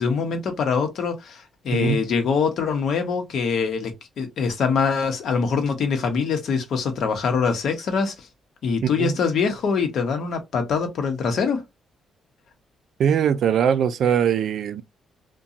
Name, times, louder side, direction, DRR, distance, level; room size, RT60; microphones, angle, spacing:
voice 1, 0.0-8.3 8.6-11.6, left 5 dB, 70° left, 0.8 m, -24 dB
voice 2, 1.7-2.0 8.8-9.1 13.0-14.8, right 8 dB, 65° right, 0.3 m, -21 dB
2.7 x 2.2 x 2.4 m
cardioid pair, 90°, 0 cm